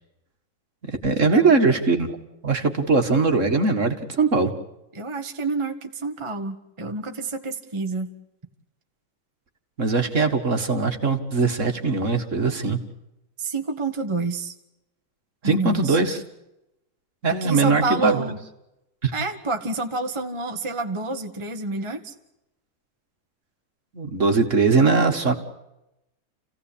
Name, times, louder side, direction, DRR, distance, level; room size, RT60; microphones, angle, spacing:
voice 1, 0.8-2.2 2.4-4.5 9.8-12.8 15.4-16.2 17.2-18.2 19.0-19.1 23.9-25.3, right 4 dB, 40° right, 6 dB, 1.9 m, -21 dB
voice 2, 4.9-8.1 13.4-14.5 15.4-16.0 17.3-18.4 19.1-22.1, right 3 dB, 15° right, 5 dB, 1.2 m, -28 dB
29.5 x 16.5 x 8.6 m, 0.91 s
omnidirectional pair, 2.3 m